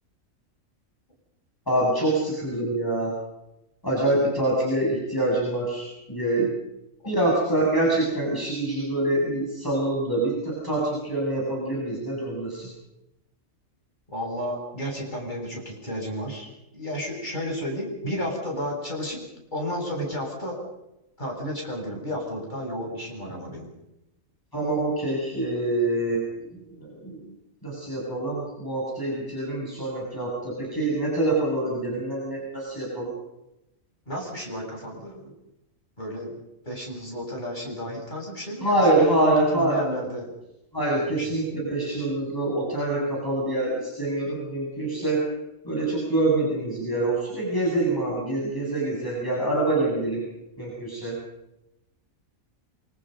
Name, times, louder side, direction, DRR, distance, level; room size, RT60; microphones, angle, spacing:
voice 1, 1.7-3.1 3.8-6.5 7.1-12.7 24.5-26.5 26.7-27.3 27.6-33.1 38.6-39.8 40.7-45.2 45.6-50.2 50.6-51.2, right 2 dB, 15° left, -5 dB, 7.7 m, -25 dB
voice 2, 14.1-19.2 19.5-20.6 21.2-23.7 34.1-35.3 36.0-36.3 36.6-40.3 40.9-41.5, equal, 35° left, -1 dB, 8.3 m, -32 dB
27.5 x 27.0 x 5.4 m, 0.90 s
omnidirectional pair, 1.4 m